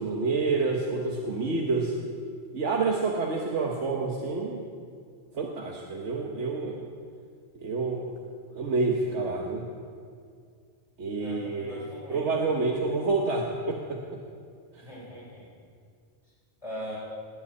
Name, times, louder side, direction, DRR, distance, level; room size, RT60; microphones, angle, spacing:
voice 1, 0.0-1.9 2.5-4.6 5.3-6.8 7.6-8.1 8.5-9.7 11.0-11.7 12.1-14.2 14.8-14.9, right 3 dB, 80° right, 0 dB, 1.5 m, -28 dB
voice 2, 11.2-12.4 14.8-15.5 16.6-17.0, equal, 30° left, -8 dB, 4.1 m, -40 dB
19.5 x 7.2 x 8.8 m, 2.2 s
omnidirectional pair, 1.2 m